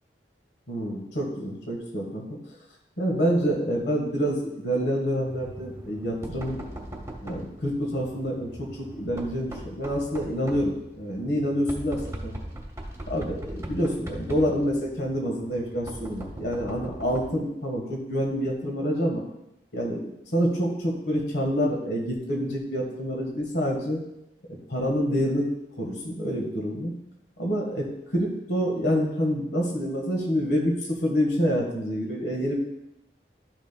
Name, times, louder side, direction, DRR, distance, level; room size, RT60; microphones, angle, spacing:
voice 1, 0.7-2.4 3.0-6.6 7.2-12.3 13.1-19.2 19.7-24.0 24.7-25.5 25.8-26.9 27.4-27.9 28.1-32.6, equal, 70° left, 0 dB, 1.5 m, -27 dB
Knock, 5.3-17.5, right 1 dB, 15° right, 1.0 m, -40 dB
12.5 x 6.2 x 2.3 m, 0.86 s
head